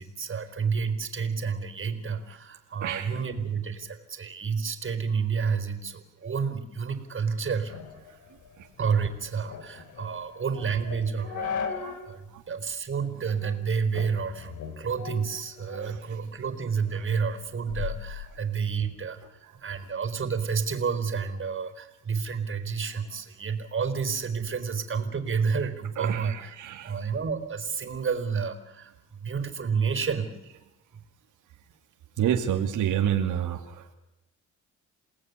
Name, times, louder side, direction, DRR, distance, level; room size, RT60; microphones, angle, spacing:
voice 1, 0.0-7.8 8.8-26.5 26.8-30.3, right 6 dB, 40° right, 9 dB, 4.4 m, -30 dB
voice 2, 2.8-3.1 8.6-8.7 11.8-12.0 12.3-12.4 15.8-16.0 26.0-26.9 32.2-33.9, right 10 dB, 85° right, 3 dB, 2.7 m, -29 dB
sound 1, 7.7-12.1 12.5-12.6 13.2-13.6 13.9-16.0 16.4-18.9, left 7 dB, 75° left, 3.9 m, -38 dB
28.5 x 19.0 x 9.8 m, 0.93 s
cardioid pair, 90°, 30 cm